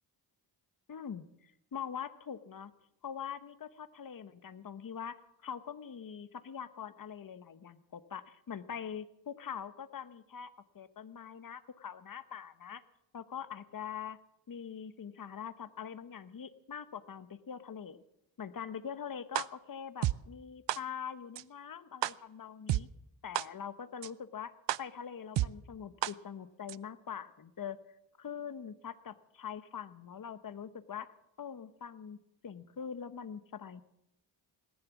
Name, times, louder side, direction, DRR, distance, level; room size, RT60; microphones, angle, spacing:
voice 1, 0.9-2.7 3.0-5.2 5.4-12.8 13.1-14.2 14.5-18.0 18.4-22.9 23.2-24.5 24.8-27.8 28.2-31.1 31.4-32.2 32.4-33.8, left 8 dB, 45° left, 12 dB, 1.0 m, -43 dB
sound 1, 19.3-19.4 20.0-20.1 20.7-20.8 21.4-21.5 22.0-22.1 22.7-22.8 23.3-23.4 24.0-24.1 24.7-24.8 25.4-25.5 26.0-26.1 26.7-26.8, right 14 dB, 65° right, 0.5 m, -29 dB
18.5 x 10.5 x 7.3 m, 0.82 s
cardioid pair, 75°, 46 cm